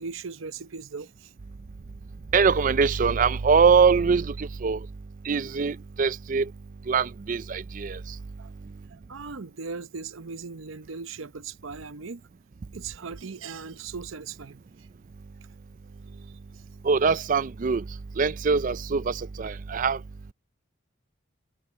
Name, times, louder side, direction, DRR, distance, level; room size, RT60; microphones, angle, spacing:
voice 1, 0.0-1.3 8.4-8.5 8.9-12.2 12.7-14.6, right 4 dB, 85° right, 0.8 m, -38 dB
voice 2, 2.3-4.9 5.3-6.5 6.9-8.0 16.8-17.8 18.2-20.0, right 5 dB, 40° right, 0.4 m, -23 dB
head